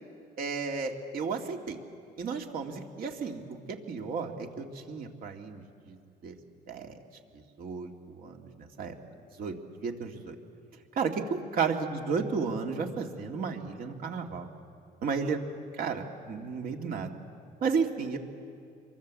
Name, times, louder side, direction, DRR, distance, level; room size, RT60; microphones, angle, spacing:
voice 1, 0.4-1.8 2.2-6.0 6.2-6.3 6.7-7.0 7.3-7.9 8.2-9.0 9.4-9.5 9.8-10.4 11.0-14.5 15.0-15.4 15.8-17.2 17.6-18.2, right 5 dB, 60° right, 3 dB, 2.6 m, -33 dB
27.0 x 23.5 x 7.7 m, 2.4 s
cardioid pair, 110°, 17 cm